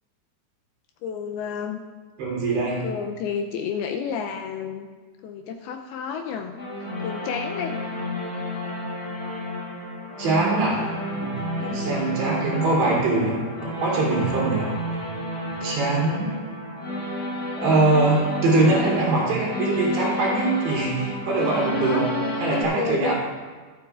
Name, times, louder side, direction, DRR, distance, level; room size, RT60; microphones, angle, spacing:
voice 1, 1.0-1.8 2.8-4.9 5.2-7.8 11.6-11.9 21.7-22.0 22.7-23.2, left 7 dB, 80° left, 4 dB, 2.3 m, -31 dB
voice 2, 2.2-2.8 10.2-13.4 13.8-14.7 15.0-15.1 15.6-16.3 17.6-22.1 22.4-23.2, right 2 dB, 85° right, -6 dB, 5.4 m, -22 dB
sound 1, 6.6-22.6, equal, 65° left, 0.9 m, -30 dB
23.0 x 7.8 x 2.4 m, 1.4 s
omnidirectional pair, 4.9 m